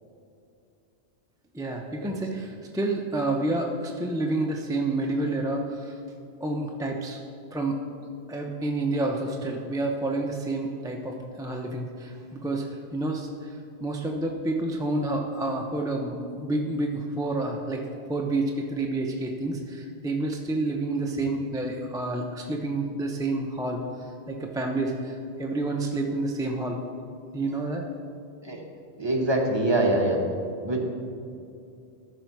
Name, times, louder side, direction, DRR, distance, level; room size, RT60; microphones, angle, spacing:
voice 1, 1.5-6.0 6.4-7.2 7.5-7.8 8.3-12.6 12.9-23.8 24.3-26.8 27.3-27.9, right 2 dB, 5° right, 0 dB, 0.4 m, -29 dB
voice 2, 29.0-30.2 30.6-30.8, right 1 dB, 25° right, 0 dB, 1.0 m, -23 dB
13.0 x 5.5 x 4.6 m, 2.5 s
omnidirectional pair, 1.1 m